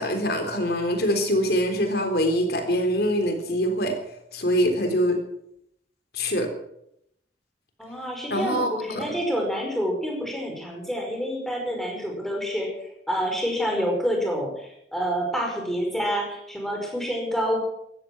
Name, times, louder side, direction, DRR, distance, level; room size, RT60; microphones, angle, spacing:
voice 1, 0.0-3.9 4.3-5.2 6.1-6.5 8.3-9.1, equal, 60° left, 6 dB, 3.7 m, -24 dB
voice 2, 7.8-17.6, equal, ahead, 0 dB, 5.2 m, -28 dB
16.0 x 14.0 x 6.2 m, 0.75 s
head